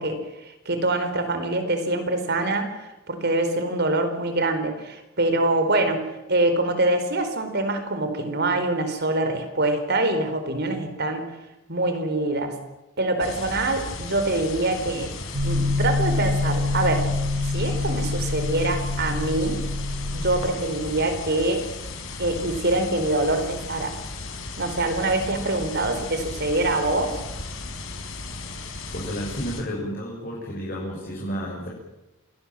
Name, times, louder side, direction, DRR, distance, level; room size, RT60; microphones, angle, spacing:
voice 1, 0.0-2.7 3.1-11.2 11.7-12.6 13.0-15.1 15.4-17.1 17.4-19.6 20.1-21.7 22.2-24.0 24.6-27.2, right 2 dB, 50° right, 8 dB, 4.3 m, -24 dB
sound 1, 13.2-29.6, left 3 dB, 65° left, 4.3 m, -36 dB
sound 2, 15.3-20.5, left 2 dB, 75° right, 4.0 m, -26 dB
voice 2, 28.9-31.7, equal, 45° left, -3 dB, 6.3 m, -31 dB
28.0 x 19.5 x 7.7 m, 0.98 s
head